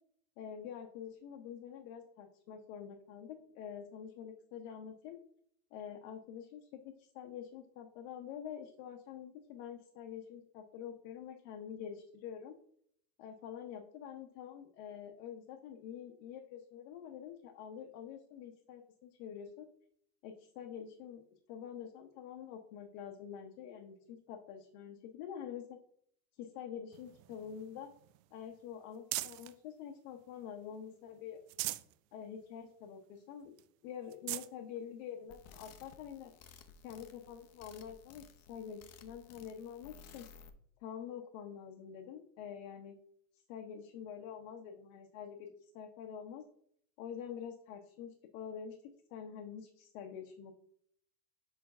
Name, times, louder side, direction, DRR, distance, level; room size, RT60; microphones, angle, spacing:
voice 1, 0.4-5.2 5.7-12.5 13.2-19.7 20.2-21.2 21.5-25.8 26.4-27.9 28.3-31.4 32.1-33.5 33.8-36.3 36.8-40.3 40.8-43.0 43.3-46.4 47.0-48.8 49.1-50.5, left 8 dB, 70° left, 3 dB, 1.0 m, -47 dB
sound 1, 26.9-29.6 30.1-30.9 31.3-32.0 32.4-32.5 32.9-33.0 33.6-33.7 34.0-34.5 35.3-35.4 37.2-37.3, right 18 dB, 70° right, 0.5 m, -42 dB
sound 2, 35.3-40.5, left 6 dB, 35° left, 0.7 m, -57 dB
4.8 x 4.5 x 5.3 m, 0.66 s
supercardioid pair, 120°, 44 cm